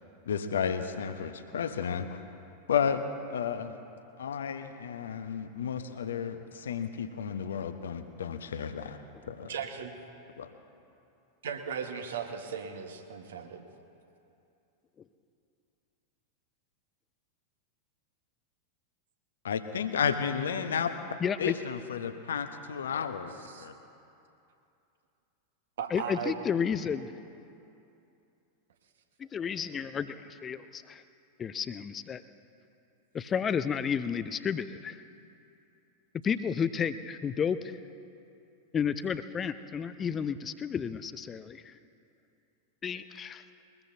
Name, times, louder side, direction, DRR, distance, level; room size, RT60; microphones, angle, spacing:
voice 1, 0.3-2.2 2.7-3.0 3.3-3.7 4.2-9.0 9.3-9.5 10.4-10.5 19.4-20.9 21.4-23.7, left 7 dB, 65° left, 9 dB, 0.9 m, -32 dB
voice 2, 9.5-10.0 11.4-13.6 23.5-23.7 25.8-26.4, right 7 dB, 60° right, 5 dB, 1.4 m, -37 dB
voice 3, 21.2-21.5 25.9-27.1 29.2-31.0 31.4-32.2 33.1-35.0 36.2-37.7 38.7-41.7 42.8-43.4, left 7 dB, 25° left, 13 dB, 0.6 m, -32 dB
22.0 x 20.5 x 2.8 m, 2.7 s
figure-of-eight pair, 90°, 0 cm